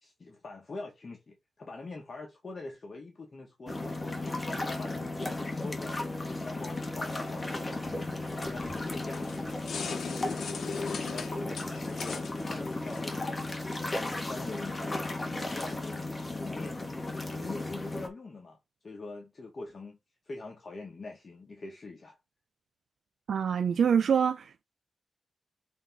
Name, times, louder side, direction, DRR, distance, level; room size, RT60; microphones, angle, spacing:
voice 1, 0.0-4.4 4.7-6.0 6.4-8.0 8.4-9.5 10.0-12.2 12.5-13.3 13.9-14.8 15.1-17.0 17.3-18.6 18.8-20.0 20.3-22.2, left 3 dB, 50° left, 2.0 m, -43 dB
sound 1, 3.7-18.1, left 2 dB, 30° left, 2.1 m, -35 dB
sound 2, 8.6-13.9, left 5 dB, 80° left, 1.2 m, -40 dB
voice 2, 23.3-24.6, right 7 dB, 80° right, 0.5 m, -25 dB
7.1 x 4.2 x 4.0 m
cardioid pair, 90°, 0 cm